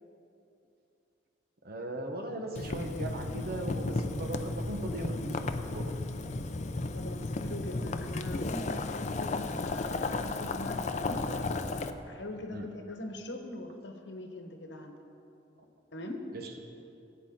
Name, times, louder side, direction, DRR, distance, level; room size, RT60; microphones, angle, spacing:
voice 1, 1.6-5.9 12.5-12.7 16.3-16.6, right 1 dB, 60° right, 3 dB, 1.2 m, -38 dB
Boiling, 2.5-11.9, left 2 dB, 40° left, 0.5 m, -34 dB
voice 2, 6.9-11.3 12.1-15.0 15.9-16.3, left 1 dB, 75° left, 4 dB, 1.2 m, -42 dB
17.5 x 8.8 x 3.8 m, 2.7 s
head